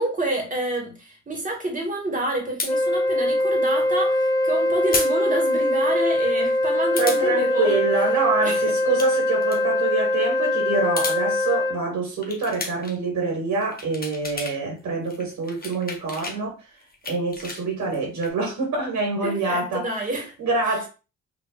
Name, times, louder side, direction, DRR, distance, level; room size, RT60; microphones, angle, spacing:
voice 1, 0.0-7.8 8.4-8.8 19.2-20.3 20.7-20.8, right 1 dB, 25° right, 1.8 m, -28 dB
sound 1, 2.6-2.7 4.9-5.1 5.5-5.6 7.0-7.2 8.8-9.1 9.4-9.6 10.8-11.2 12.2-13.0 13.5-14.6 14.9-16.4 16.8-18.3, left 3 dB, 30° left, 1.0 m, -32 dB
Wind instrument woodwind instrument, 2.7-11.8, left 1 dB, 15° left, 0.3 m, -22 dB
voice 2, 7.0-16.5 17.1-19.9 20.4-20.9, right 3 dB, 70° right, 1.8 m, -25 dB
5.3 x 2.9 x 2.4 m
cardioid pair, 90°, 30 cm